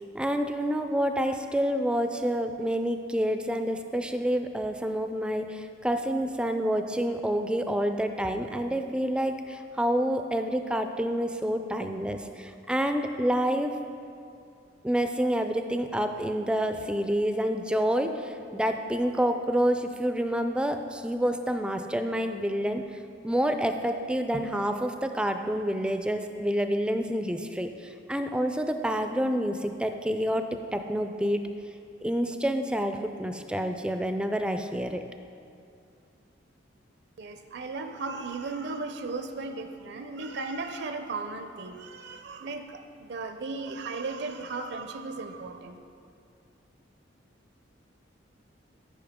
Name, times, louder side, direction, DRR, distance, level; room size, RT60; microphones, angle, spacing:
voice 1, 0.1-13.7 14.8-22.8 23.2-30.4 30.7-31.4 32.0-35.0, equal, 5° right, 7 dB, 0.3 m, -28 dB
voice 2, 37.2-45.8, right 3 dB, 60° right, 7 dB, 0.5 m, -36 dB
13.5 x 5.5 x 3.6 m, 2.4 s
head